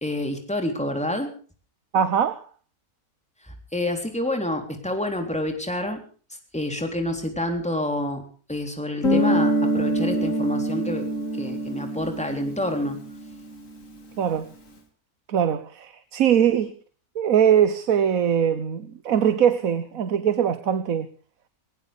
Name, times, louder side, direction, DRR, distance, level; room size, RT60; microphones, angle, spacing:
voice 1, 0.0-1.3 3.4-6.0 6.5-8.2 8.5-11.1 11.3-13.0, left 1 dB, 5° left, 4 dB, 3.6 m, -28 dB
voice 2, 1.9-2.4 14.2-14.5 15.3-16.7 17.1-21.1, right 8 dB, 70° right, 12 dB, 1.4 m, -21 dB
Guitar, 9.0-13.6, right 1 dB, 60° left, 2.7 m, -25 dB
19.5 x 19.5 x 3.5 m, 0.40 s
omnidirectional pair, 1.6 m